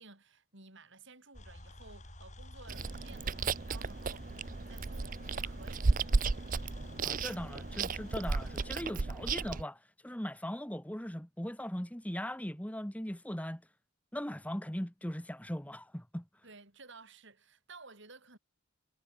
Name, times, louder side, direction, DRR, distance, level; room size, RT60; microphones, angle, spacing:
voice 1, 0.0-5.9 16.4-18.4, right 3 dB, 60° right, 6.3 m, -55 dB
sound 1, 1.3-8.8, left 1 dB, 35° left, 5.5 m, -50 dB
Chewing mastication, 2.7-9.6, right 4 dB, 40° right, 0.6 m, -34 dB
voice 2, 7.0-13.6 14.1-16.2, equal, 5° left, 1.5 m, -39 dB
head